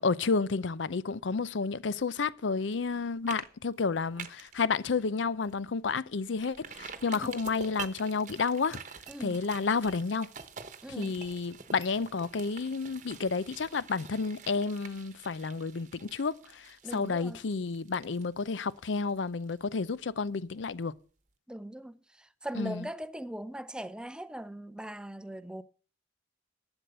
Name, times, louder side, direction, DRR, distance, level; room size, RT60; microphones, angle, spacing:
voice 1, 0.0-8.8 9.2-10.3 11.0-20.9 22.6-22.8, left 4 dB, 80° left, 0.6 m, -31 dB
sound 1, 2.7-2.9 3.3-3.5 3.8-4.6 5.0-5.1 5.5-5.6 6.4-20.0 20.3-20.4, right 6 dB, 40° right, 1.1 m, -47 dB
voice 2, 9.1-9.4 10.8-11.2 16.8-17.4 21.5-25.6, right 1 dB, 5° right, 0.5 m, -40 dB
12.0 x 7.9 x 6.6 m
head